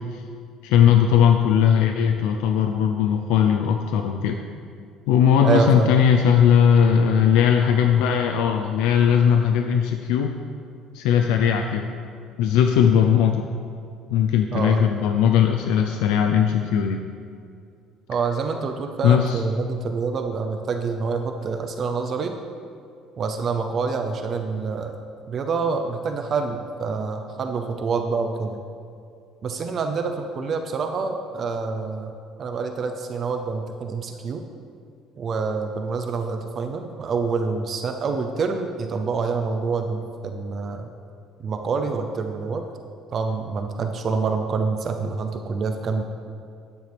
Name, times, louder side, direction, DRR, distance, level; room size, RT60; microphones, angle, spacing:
voice 1, 0.6-4.4 5.1-10.4 10.9-11.9 12.4-13.5 14.1-17.0 19.0-19.4, left 8 dB, 85° left, 5 dB, 0.5 m, -19 dB
voice 2, 5.4-5.9 14.5-14.9 18.1-22.3 23.2-25.0 25.3-28.6 29.4-34.4 35.2-40.9 41.4-42.6 43.1-46.0, right 4 dB, 30° right, 5 dB, 0.6 m, -26 dB
12.5 x 9.5 x 3.4 m, 2.4 s
cardioid pair, 165°, 0 cm